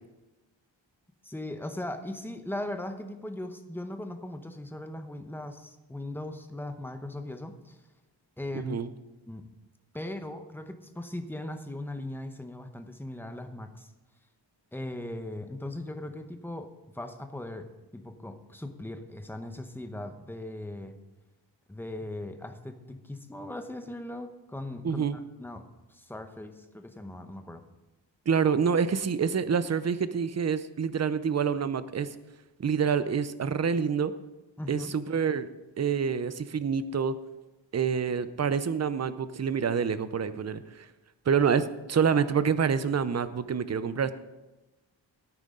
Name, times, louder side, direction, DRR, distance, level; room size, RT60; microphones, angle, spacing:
voice 1, 1.2-7.8 8.4-8.8 9.3-9.5 9.9-13.9 14.7-21.0 21.7-27.6 34.6-34.9, left 1 dB, 5° left, 7 dB, 0.8 m, -39 dB
voice 2, 8.5-8.9 24.8-25.2 28.3-32.1 32.6-34.1 34.7-35.5 35.8-37.2 37.7-40.9 41.3-41.6 41.9-44.1, right 6 dB, 35° right, 13 dB, 0.6 m, -27 dB
17.5 x 9.2 x 3.7 m, 1.1 s
wide cardioid pair, 165°, 45 cm